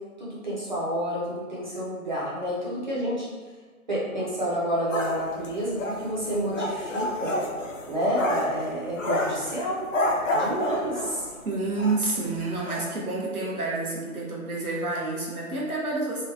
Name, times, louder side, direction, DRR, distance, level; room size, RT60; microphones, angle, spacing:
voice 1, 0.2-3.3 3.9-7.4 7.9-9.9 10.3-11.3, equal, 30° right, -8 dB, 0.7 m, -29 dB
sound 1, 4.9-11.4 11.8-12.0 12.3-12.4 12.7-12.9, left 1 dB, 60° left, 0.6 m, -29 dB
voice 2, 11.4-16.2, right 2 dB, 75° right, -4 dB, 1.0 m, -29 dB
3.1 x 2.1 x 2.5 m, 1.4 s
figure-of-eight pair, 155°, 44 cm